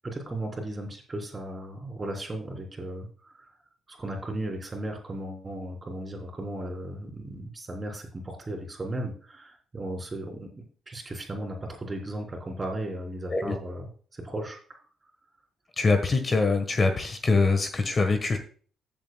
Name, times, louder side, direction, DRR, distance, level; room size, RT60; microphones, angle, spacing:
voice 1, 0.0-3.5 3.9-14.6, right 1 dB, 25° right, 2 dB, 3.6 m, -36 dB
voice 2, 15.8-18.4, left 3 dB, 35° left, 7 dB, 1.4 m, -23 dB
15.5 x 7.6 x 2.3 m, 0.42 s
cardioid pair, 90°, 0 cm